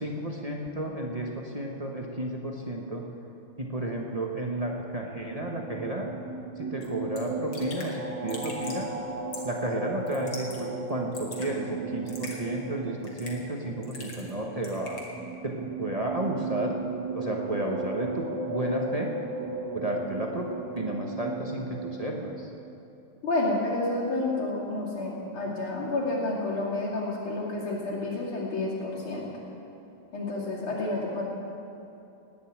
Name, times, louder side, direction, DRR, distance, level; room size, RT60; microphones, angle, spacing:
voice 1, 0.0-3.0 3.6-6.1 6.6-8.9 9.4-15.0 15.4-16.8 17.1-19.1 19.7-20.5 20.7-22.5, right 1 dB, 30° right, -1 dB, 0.7 m, -32 dB
sound 1, 5.2-22.5, right 3 dB, 65° right, 2.3 m, -36 dB
Raindrop / Drip, 6.8-6.9 7.2-7.3 7.5-7.9 8.3-8.8 9.3-9.6 10.1-10.6 10.9-11.5 12.1-12.4 13.0-13.5 13.8-14.3 14.6-15.1, left 3 dB, 60° left, 2.6 m, -42 dB
voice 2, 23.2-29.3 30.1-31.2, left 2 dB, 90° left, -6 dB, 3.5 m, -30 dB
19.0 x 6.5 x 8.7 m, 2.8 s
omnidirectional pair, 2.2 m